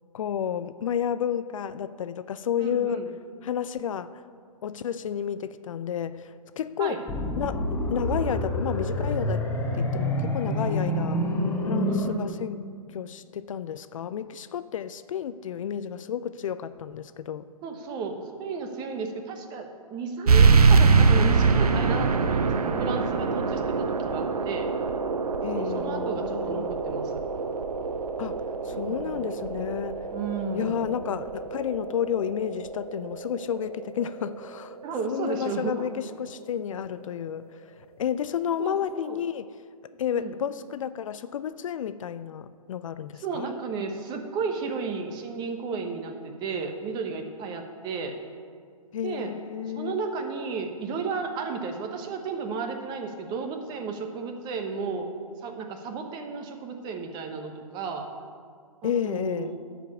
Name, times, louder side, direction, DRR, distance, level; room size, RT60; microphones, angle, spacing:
voice 1, 0.1-3.0 3.4-4.2 4.6-7.0 7.3-9.5 9.7-11.3 11.6-17.5 25.4-26.7 28.2-30.0 30.5-34.8 35.1-37.6 38.0-39.5 40.0-43.5 48.9-50.0 58.8-59.6, left 9 dB, 60° left, 14 dB, 0.4 m, -31 dB
voice 2, 2.6-3.1 6.8-7.0 11.8-12.3 17.6-24.7 25.5-27.2 28.7-29.2 30.1-30.8 34.8-35.9 38.6-39.2 40.1-40.3 43.2-48.2 49.0-49.3 49.7-55.1 55.4-58.1 58.8-59.6, right 5 dB, 20° right, 5 dB, 1.0 m, -33 dB
sound 1, 7.1-12.1, left 1 dB, 10° left, 1.1 m, -27 dB
sound 2, 20.3-35.4, right 4 dB, 80° right, 0.8 m, -24 dB
11.5 x 5.0 x 6.9 m, 2.1 s
hypercardioid pair, 135°, 19 cm